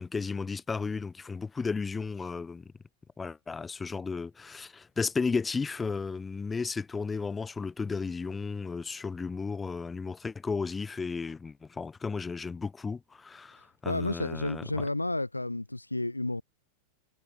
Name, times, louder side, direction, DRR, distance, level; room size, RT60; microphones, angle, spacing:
voice 1, 0.0-2.7 3.2-14.9, left 4 dB, 15° left, 1.0 m, -34 dB
voice 2, 13.9-16.4, left 2 dB, 85° left, 0.3 m, -31 dB
figure-of-eight pair, 90°, 0 cm